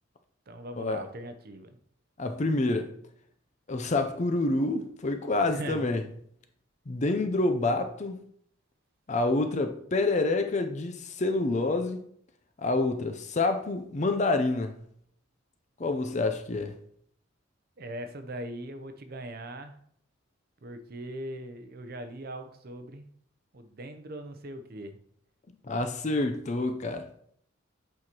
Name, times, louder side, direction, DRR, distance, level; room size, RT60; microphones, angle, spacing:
voice 1, 0.5-1.8 5.5-5.9 17.8-19.8 20.6-23.0 23.5-25.0, right 1 dB, 50° right, 0.6 m, -40 dB
voice 2, 2.2-2.9 3.7-6.0 6.9-8.2 9.1-12.0 12.6-14.8 15.8-16.8 25.7-27.1, left 2 dB, 35° left, 0.5 m, -27 dB
8.2 x 4.7 x 2.9 m
head